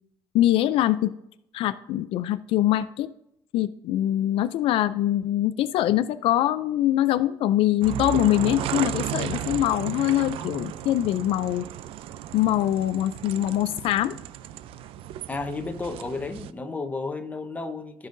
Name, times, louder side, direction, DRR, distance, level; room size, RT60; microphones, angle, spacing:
voice 1, 0.3-1.1 1.5-3.1 3.5-11.7 12.3-14.1, left 13 dB, 75° left, 12 dB, 0.4 m, -23 dB
sound 1, 7.8-16.5, right 11 dB, 75° right, 0.5 m, -34 dB
voice 2, 15.3-18.1, left 3 dB, 15° left, 7 dB, 0.9 m, -32 dB
16.0 x 5.6 x 2.6 m, 0.80 s
cardioid pair, 145°, 10 cm